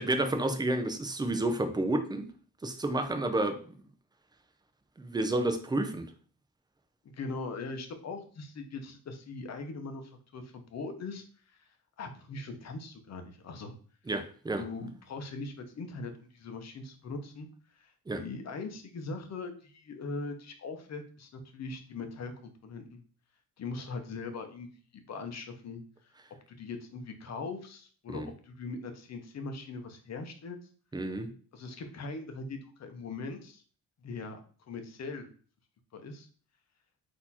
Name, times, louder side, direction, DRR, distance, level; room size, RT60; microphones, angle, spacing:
voice 1, 0.0-2.3 2.6-3.7 5.0-6.1 14.1-14.6 18.1-18.2 28.1-28.3 30.9-31.3, right 2 dB, 10° right, 6 dB, 0.4 m, -30 dB
voice 2, 7.0-11.2 11.5-11.7 12.0-13.8 14.6-17.5 17.8-23.0 23.6-25.8 26.5-30.6 31.5-33.6 34.0-34.4 34.7-35.3 35.9-36.3, left 3 dB, 45° left, 6 dB, 0.8 m, -41 dB
4.2 x 2.9 x 4.1 m, 0.43 s
cardioid pair, 150°, 39 cm